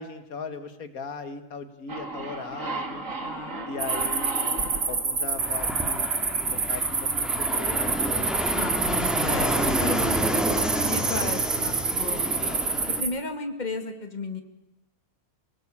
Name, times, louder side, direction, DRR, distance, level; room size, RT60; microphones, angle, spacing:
voice 1, 0.0-3.0 3.7-6.1 6.5-8.2, left 4 dB, 80° left, 10 dB, 2.0 m, -38 dB
sound 1, 1.9-6.4, right 2 dB, 65° right, 2.7 m, -35 dB
voice 2, 3.2-3.7 8.4-12.7 13.0-14.4, left 3 dB, 30° left, 7 dB, 2.3 m, -35 dB
sound 2, 3.8-13.1, right 4 dB, 85° right, 2.9 m, -28 dB
Fixed-wing aircraft airplane, 5.4-13.0, equal, ahead, 2.4 m, -29 dB
27.0 x 19.0 x 8.7 m, 0.88 s
omnidirectional pair, 1.5 m